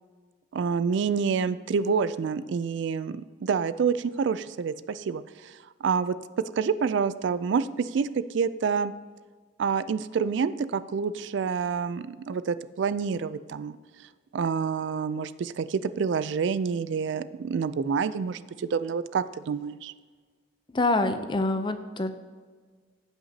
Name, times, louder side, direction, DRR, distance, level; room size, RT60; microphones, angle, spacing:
voice 1, 0.5-8.9 9.6-13.8 14.3-19.9, right 6 dB, 60° right, 14 dB, 0.3 m, -28 dB
voice 2, 20.7-22.1, left 2 dB, 25° left, 9 dB, 0.5 m, -26 dB
15.5 x 5.8 x 2.8 m, 1.5 s
head